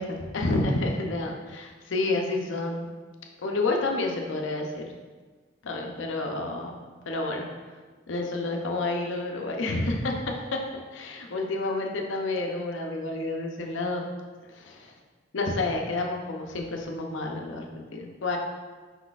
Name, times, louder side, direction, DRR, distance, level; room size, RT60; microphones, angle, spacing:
voice 1, 0.0-2.9 3.4-5.0 5.6-6.8 7.1-7.5 8.1-10.5 10.9-14.0 14.5-14.9 15.3-18.4, left 2 dB, 80° left, 2 dB, 0.6 m, -29 dB
5.5 x 4.0 x 2.4 m, 1.4 s
head